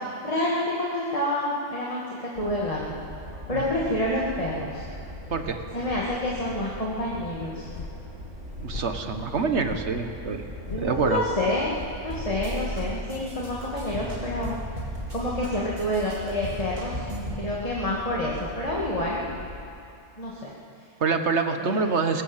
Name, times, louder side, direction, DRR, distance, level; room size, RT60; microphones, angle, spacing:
voice 1, 0.2-3.0 3.5-4.8 5.7-7.7 10.7-14.5 15.1-17.1 17.3-19.3 20.2-20.5 20.8-20.9 21.6-21.8, left 1 dB, 30° left, -5 dB, 2.4 m, -28 dB
sound 1, 2.3-19.6, equal, 90° right, 4.8 m, -40 dB
sound 2, 7.5-12.9, left 3 dB, 45° left, 1.5 m, -43 dB
voice 2, 8.6-10.4 10.8-11.2 21.0-22.2, right 4 dB, 60° right, 6 dB, 1.5 m, -26 dB
sound 3, 12.1-12.8 13.1-15.5 15.8-17.4, equal, 35° right, 4.9 m, -35 dB
21.5 x 17.0 x 7.4 m, 2.5 s
omnidirectional pair, 1.3 m